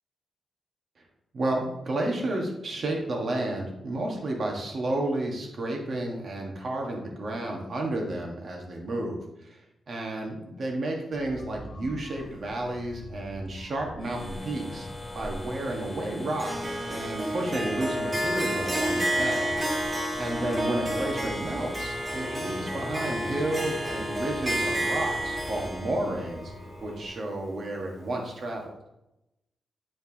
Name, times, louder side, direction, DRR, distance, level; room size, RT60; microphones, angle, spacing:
voice 1, 1.3-9.6 9.9-14.9 15.1-16.5 16.9-19.5 19.8-26.5 26.8-28.7, right 1 dB, 45° right, 0 dB, 1.4 m, -31 dB
sound 1, 11.1-27.1, left 1 dB, 55° left, 1.1 m, -45 dB
sound 2, 14.0-25.7, left 2 dB, 10° left, 0.3 m, -41 dB
Harp, 16.4-27.6, right 1 dB, 25° right, 1.3 m, -30 dB
8.9 x 4.5 x 2.9 m, 0.89 s
wide cardioid pair, 140°, 0 cm